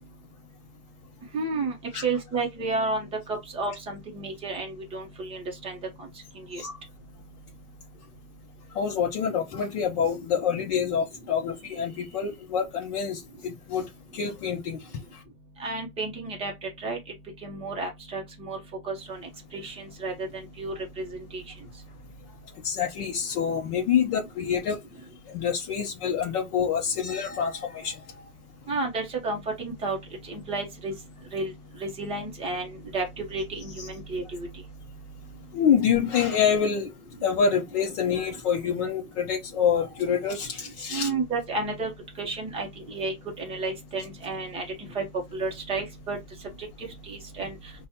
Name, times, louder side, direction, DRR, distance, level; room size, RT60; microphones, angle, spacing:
voice 1, 1.3-1.7 2.0-6.1 6.5-6.6 15.6-17.0 17.4-18.6 18.8-21.4 28.7-30.0 30.3-30.9 31.3-31.5 31.8-34.5 40.9-41.9 42.2-44.6 44.9-45.0 45.3-46.2 47.1-47.5, right 3 dB, 15° right, 0.9 m, -31 dB
voice 2, 8.7-13.9 14.1-14.8 22.6-24.8 25.3-28.0 35.5-36.9 37.2-41.1, left 7 dB, 30° left, 0.7 m, -26 dB
5.3 x 2.3 x 2.8 m
hypercardioid pair, 125°, 45 cm